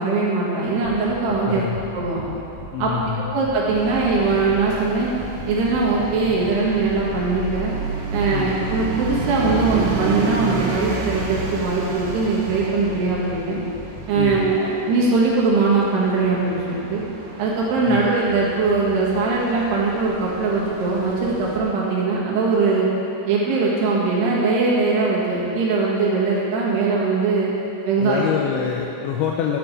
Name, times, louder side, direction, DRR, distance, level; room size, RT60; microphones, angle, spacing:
voice 1, 0.0-1.6 1.9-2.2 2.8-2.9 3.3-5.1 5.5-7.7 8.1-13.6 14.1-17.0 17.4-22.9 23.3-27.5 27.9-28.2, right 4 dB, 65° right, -6 dB, 3.6 m, -21 dB
sound 1, 0.8-1.4 1.7-3.1 3.4-4.8 5.2-6.5 6.9-8.3 8.6-10.0 10.3-11.7 12.0-13.4 13.7-14.4, left 3 dB, 50° left, 4.1 m, -39 dB
voice 2, 1.3-1.8 2.7-3.3 8.3-8.5 14.2-14.4 17.9-18.0 28.0-29.6, left 8 dB, 80° left, 0 dB, 2.7 m, -26 dB
sound 2, 3.8-21.6, right 3 dB, 80° right, 3.8 m, -32 dB
12.0 x 7.9 x 4.8 m, 2.9 s
omnidirectional pair, 5.6 m